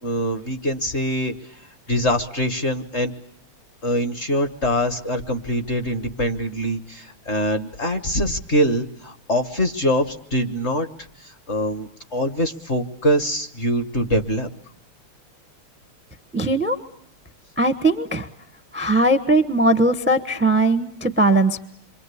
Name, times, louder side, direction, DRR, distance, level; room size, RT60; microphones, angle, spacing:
voice 1, 0.0-1.3 1.9-3.1 3.8-10.9 11.2-14.5, equal, 40° left, 8 dB, 1.2 m, -23 dB
voice 2, 16.3-16.8 17.6-18.3 18.7-21.6, right 2 dB, 10° right, 10 dB, 0.6 m, -19 dB
28.0 x 24.5 x 8.2 m, 0.66 s
omnidirectional pair, 2.4 m